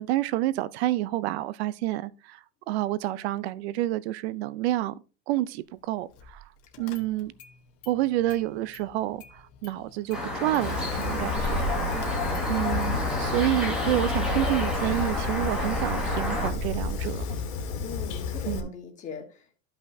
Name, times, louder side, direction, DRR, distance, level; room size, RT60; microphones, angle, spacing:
voice 1, 0.0-2.4 2.7-4.9 5.3-6.4 6.8-7.3 7.9-11.8 12.5-17.2 18.5-18.7, right 15 dB, 55° right, 0.6 m, -29 dB
Car / Engine starting, 6.2-6.4 6.7-7.5 7.8-8.9 9.2-17.0, right 2 dB, 40° left, 1.1 m, -36 dB
voice 2, 6.7-7.3 11.9-12.4 17.8-19.6, left 6 dB, 20° left, 1.3 m, -42 dB
sound 1, 10.1-16.5, left 2 dB, ahead, 1.6 m, -30 dB
Fire, 10.6-18.6, left 6 dB, 60° left, 1.8 m, -33 dB
13.0 x 5.7 x 2.7 m
supercardioid pair, 180°, 38 cm